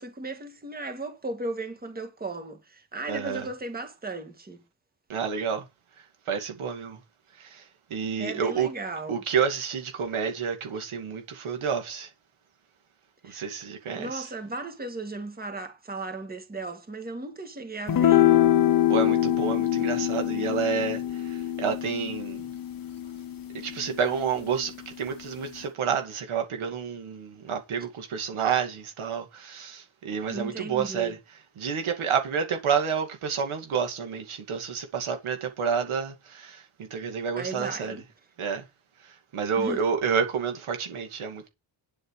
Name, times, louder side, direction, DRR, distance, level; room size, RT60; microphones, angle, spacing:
voice 1, 0.0-4.6 8.2-9.2 13.2-13.5 13.9-18.3 30.3-31.1 37.4-38.0 39.6-39.8, right 2 dB, 20° right, 1.7 m, -36 dB
voice 2, 3.1-3.5 5.1-5.6 6.3-7.0 7.4-7.6 7.9-8.7 9.1-12.1 13.2-14.3 18.9-22.4 23.5-31.2 31.6-36.6 36.9-37.9 38.4-38.6 39.3-41.5, right 6 dB, 90° right, 2.4 m, -29 dB
sound 1, 17.9-24.4, left 12 dB, 45° left, 0.8 m, -24 dB
9.9 x 7.2 x 4.9 m
wide cardioid pair, 140°, 48 cm